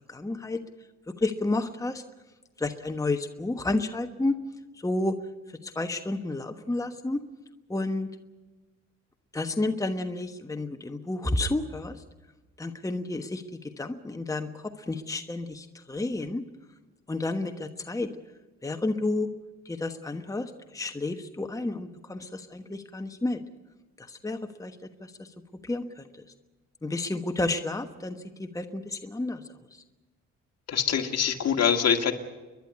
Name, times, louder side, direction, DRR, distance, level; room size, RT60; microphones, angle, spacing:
voice 1, 0.1-0.6 1.1-2.0 2.6-4.3 4.8-5.2 5.6-7.2 7.7-8.1 9.3-12.0 12.6-16.4 17.1-18.1 18.6-19.3 19.6-23.4 24.0-25.3 25.6-26.1 26.8-29.4, left 2 dB, 10° left, 6 dB, 1.2 m, -31 dB
voice 2, 30.7-32.1, left 8 dB, 55° left, 5 dB, 2.1 m, -24 dB
30.0 x 11.5 x 9.7 m, 1.2 s
cardioid pair, 90°, 30 cm